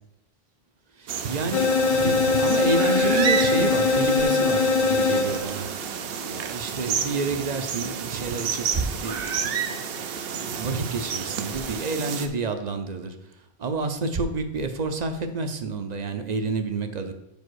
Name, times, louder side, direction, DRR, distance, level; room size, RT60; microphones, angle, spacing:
voice 1, 1.0-5.7 6.2-9.9 10.2-13.1 13.6-17.1, right 3 dB, 50° right, 8 dB, 0.6 m, -29 dB
sound 1, 1.1-12.3, right 7 dB, 75° right, 0.8 m, -30 dB
sound 2, 1.5-5.7, left 4 dB, 60° left, 0.6 m, -21 dB
5.2 x 4.9 x 6.2 m, 0.87 s
omnidirectional pair, 1.0 m